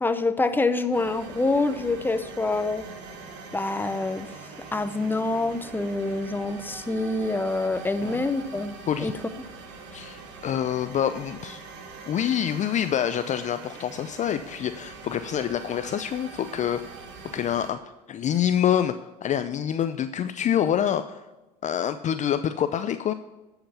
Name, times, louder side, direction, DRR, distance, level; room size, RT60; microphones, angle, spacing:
voice 1, 0.0-2.8 3.5-4.3 4.7-9.1, left 2 dB, 10° left, 10 dB, 0.9 m, -26 dB
sound 1, 0.9-17.7, right 4 dB, 60° right, 1.9 m, -43 dB
voice 2, 9.9-11.6 12.1-17.0 17.3-17.8 18.1-19.0 19.2-21.2 21.6-23.1, left 9 dB, 35° left, 10 dB, 0.5 m, -26 dB
11.0 x 5.8 x 5.7 m, 1.1 s
hypercardioid pair, 75°, 21 cm